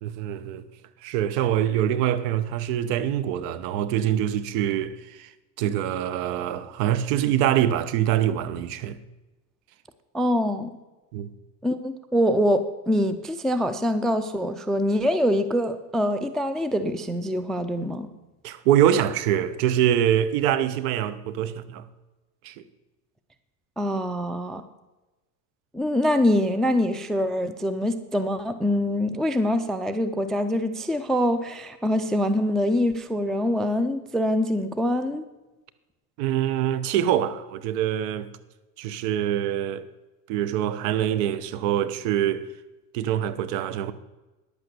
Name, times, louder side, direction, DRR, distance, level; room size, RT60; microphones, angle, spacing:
voice 1, 0.0-0.7 1.0-5.3 5.6-9.0 11.1-11.3 18.4-21.9 22.4-22.5 36.2-38.3 38.8-39.8 40.3-42.5 42.9-43.9, right 11 dB, 70° right, 1.1 m, -24 dB
voice 2, 10.1-10.7 11.6-18.1 23.8-24.6 25.7-35.2, equal, ahead, 0.3 m, -24 dB
10.5 x 8.4 x 6.8 m
supercardioid pair, 115°, 49 cm